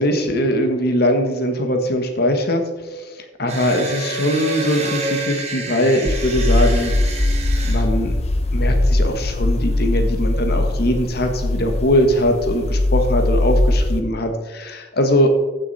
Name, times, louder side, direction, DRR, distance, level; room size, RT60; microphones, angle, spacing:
voice 1, 0.0-2.6 2.9-7.1 7.6-8.1 8.5-15.3, equal, 55° left, 5 dB, 1.5 m, -21 dB
sound 1, 3.5-7.8, right 2 dB, 35° right, 1.8 m, -28 dB
sound 2, 6.1-14.0, left 1 dB, 35° left, 0.9 m, -20 dB
14.5 x 6.6 x 4.2 m, 1.3 s
head